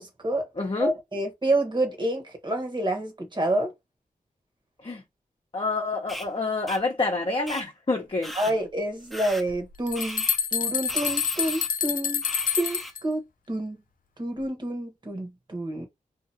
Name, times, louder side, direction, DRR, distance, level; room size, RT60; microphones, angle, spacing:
voice 1, 0.0-0.5 0.8-3.7 8.3-10.2 10.5-12.2 12.6-13.2 13.5-13.8 14.2-15.9, right 1 dB, 30° right, 1.3 m, -28 dB
voice 2, 0.6-0.9 4.8-5.0 5.5-8.3, left 3 dB, 35° left, 0.8 m, -27 dB
sound 1, 6.1-6.3 6.7-6.8 7.5-7.6 8.2-8.5 9.1-9.4 9.9-10.4 10.9-11.7 12.2-12.9, equal, ahead, 0.7 m, -37 dB
sound 2, 9.5-9.6 9.9-13.0, left 8 dB, 70° left, 0.4 m, -27 dB
2.8 x 2.6 x 2.7 m
wide cardioid pair, 75°, 15 cm